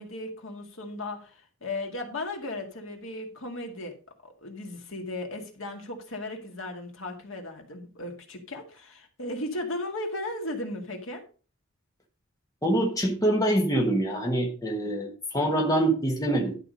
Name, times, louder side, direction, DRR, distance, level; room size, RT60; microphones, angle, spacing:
voice 1, 0.0-3.9 4.2-11.2, left 1 dB, 70° left, 3 dB, 2.0 m, -36 dB
voice 2, 12.6-16.6, right 1 dB, 15° left, 1 dB, 1.4 m, -25 dB
11.5 x 5.0 x 5.2 m, 0.37 s
head